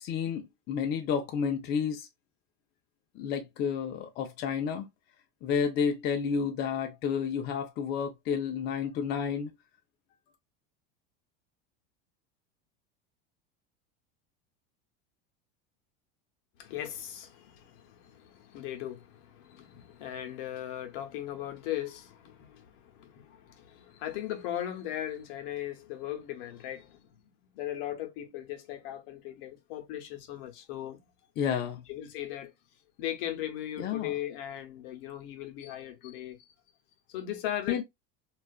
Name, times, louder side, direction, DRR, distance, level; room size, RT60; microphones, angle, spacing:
voice 1, 0.0-2.1 3.1-4.9 5.4-9.5 31.4-31.8 33.8-34.1 37.7-37.8, left 7 dB, 35° left, 0.4 m, -30 dB
voice 2, 16.6-27.1 27.5-31.0 31.9-32.5 33.0-36.5 37.1-37.8, left 12 dB, 65° left, 0.8 m, -38 dB
2.3 x 2.3 x 2.3 m
supercardioid pair, 130°, 30 cm